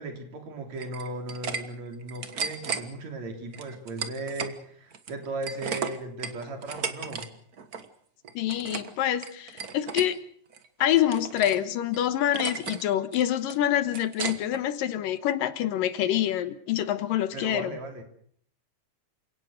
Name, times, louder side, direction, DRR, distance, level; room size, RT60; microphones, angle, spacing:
voice 1, 0.0-7.3 17.3-18.0, right 2 dB, 50° right, 4 dB, 4.4 m, -37 dB
sound 1, 0.8-1.6 1.9-2.8 3.5-4.5 4.9-7.3 7.5-7.9 8.2-8.9 9.2-10.1 10.5-11.6 11.9-12.0 12.3-12.8 13.1-14.6, right 5 dB, 85° right, 0.8 m, -34 dB
voice 2, 8.3-10.2 10.8-17.7, left 11 dB, 75° left, 12 dB, 2.8 m, -26 dB
28.5 x 17.5 x 6.5 m, 0.62 s
omnidirectional pair, 4.1 m